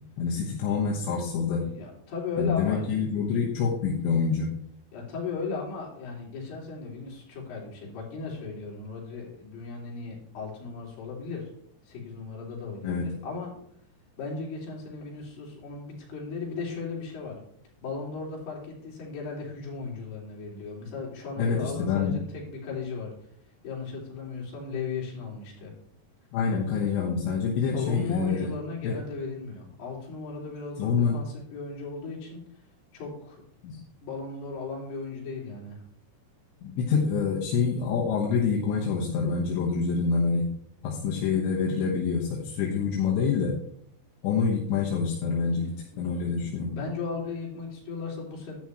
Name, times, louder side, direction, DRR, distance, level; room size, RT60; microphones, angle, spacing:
voice 1, 0.2-1.6 2.4-4.5 12.8-13.1 21.4-22.2 26.3-28.5 28.8-29.0 30.8-31.2 33.6-33.8 36.6-40.5 40.8-43.5 44.2-46.7, left 5 dB, 80° left, -3 dB, 3.6 m, -26 dB
voice 2, 1.5-2.9 4.9-11.4 11.9-13.5 14.2-17.4 17.8-23.1 23.6-25.7 26.8-27.0 27.7-32.4 32.9-33.4 34.0-35.8 45.9-48.6, left 4 dB, 65° left, -3 dB, 4.9 m, -36 dB
11.0 x 10.5 x 3.2 m, 0.70 s
omnidirectional pair, 5.2 m